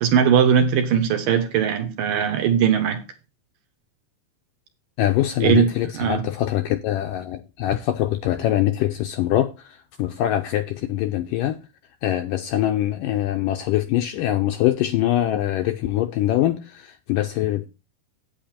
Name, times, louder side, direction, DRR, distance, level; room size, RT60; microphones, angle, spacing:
voice 1, 0.0-3.0 5.4-6.3, right 8 dB, 70° right, 2.6 m, -20 dB
voice 2, 5.0-11.6 12.0-17.7, left 13 dB, 80° left, 2.0 m, -23 dB
8.7 x 8.6 x 4.3 m
omnidirectional pair, 4.5 m